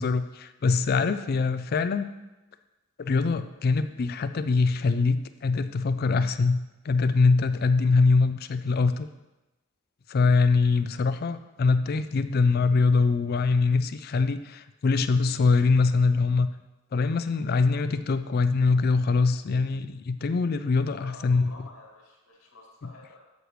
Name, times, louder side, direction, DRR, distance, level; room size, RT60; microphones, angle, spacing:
voice 1, 0.0-2.1 3.0-6.6 6.8-9.1 10.1-16.5 16.9-21.5, left 4 dB, 45° left, 11 dB, 0.4 m, -23 dB
voice 2, 20.9-23.2, left 3 dB, 85° left, -2 dB, 2.2 m, -49 dB
8.1 x 7.9 x 3.2 m, 1.0 s
head